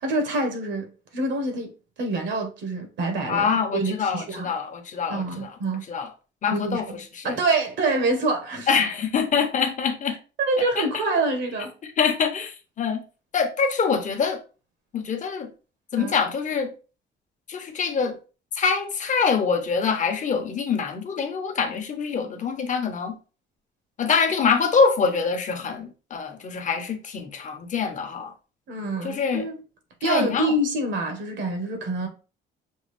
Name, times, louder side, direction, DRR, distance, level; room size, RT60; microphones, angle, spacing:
voice 1, 0.0-1.7 2.0-4.5 5.1-5.8 6.5-8.7 10.4-11.7 16.0-16.2 28.7-29.6 30.0-32.1, right 2 dB, 65° right, 1.3 m, -26 dB
voice 2, 3.3-5.5 5.9-6.1 6.4-6.9 7.1-7.3 8.7-10.2 10.8-10.9 12.0-13.0 13.3-14.4 14.9-15.5 15.9-16.7 17.5-18.1 18.5-23.1 24.0-28.3 29.0-29.5 30.0-30.5, left 5 dB, 40° left, 1.0 m, -24 dB
6.3 x 2.4 x 3.3 m
cardioid pair, 130°, 20 cm